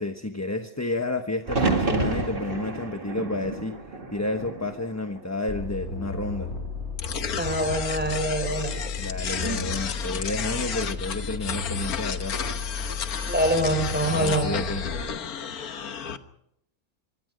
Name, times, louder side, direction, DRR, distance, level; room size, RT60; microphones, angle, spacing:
voice 1, 0.0-3.8 4.1-6.5 9.0-12.4 14.1-14.8, left 2 dB, 10° left, 6 dB, 1.0 m, -31 dB
sound 1, 1.4-5.5 5.9-6.6 8.5-9.0, right 3 dB, 35° right, 2.2 m, -30 dB
sound 2, 5.5-15.0, left 3 dB, 50° left, 4.3 m, -34 dB
sound 3, 7.0-16.2, left 7 dB, 80° left, 1.6 m, -33 dB
voice 2, 7.4-8.7 9.2-9.6 13.3-14.5, right 1 dB, 5° right, 5 dB, 5.6 m, -25 dB
26.5 x 22.5 x 5.3 m, 0.75 s
omnidirectional pair, 1.5 m